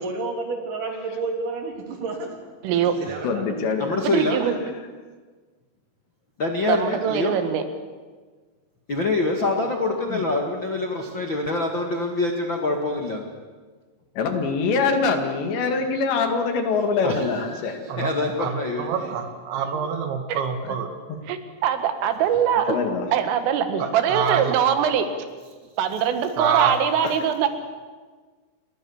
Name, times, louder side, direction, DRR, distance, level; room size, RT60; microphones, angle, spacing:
voice 1, 0.0-2.4 2.7-3.4, right 3 dB, 45° right, 3 dB, 4.3 m, -30 dB
voice 2, 2.6-3.0 4.0-4.5 6.7-7.7 20.3-20.4 21.3-22.8 23.1-25.2 25.8-27.5, right 8 dB, 90° right, 9 dB, 4.3 m, -22 dB
voice 3, 3.2-3.9 10.1-10.2 14.2-17.8 20.6-20.7 22.7-23.1, left 4 dB, 65° left, 5 dB, 4.2 m, -24 dB
voice 4, 3.8-4.4 6.4-7.4 8.9-13.2 17.0-18.9, left 2 dB, 50° left, 3 dB, 1.4 m, -25 dB
voice 5, 18.4-20.9 23.8-24.6 26.4-26.8, right 7 dB, 70° right, 6 dB, 4.2 m, -26 dB
29.0 x 23.0 x 7.2 m, 1.4 s
omnidirectional pair, 5.6 m